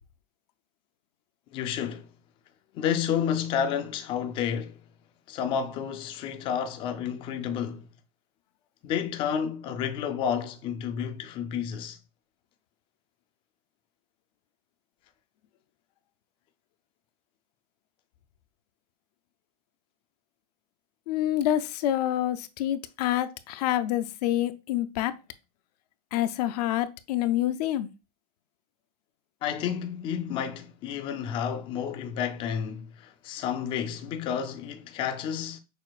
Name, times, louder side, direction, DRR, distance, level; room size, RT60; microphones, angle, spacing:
voice 1, 1.5-2.1 2.7-4.8 5.3-7.9 8.8-12.0 29.4-35.6, left 8 dB, 25° left, 0.4 m, -30 dB
voice 2, 21.1-25.1 26.1-27.9, left 12 dB, 90° left, 0.4 m, -27 dB
6.2 x 2.4 x 2.3 m
supercardioid pair, 170°, 20 cm